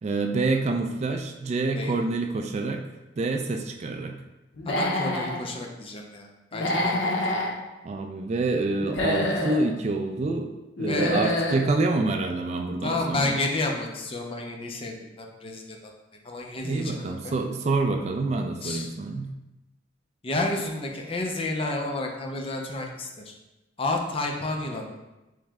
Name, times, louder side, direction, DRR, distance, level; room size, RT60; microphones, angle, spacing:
voice 1, 0.0-2.8 3.2-4.2 7.8-10.5 10.8-13.3 16.6-19.3, right 3 dB, 35° right, 4 dB, 0.3 m, -27 dB
Human voice / Animal, 4.6-5.4 6.5-7.5 8.8-9.6 10.8-11.6, left 1 dB, 80° left, 0.7 m, -26 dB
voice 2, 4.7-7.3 10.8-11.2 12.8-15.9 16.2-17.3 18.6-18.9 20.2-23.3 23.8-25.0, left 2 dB, 30° left, 1 dB, 0.5 m, -31 dB
3.7 x 3.2 x 3.4 m, 1.0 s
head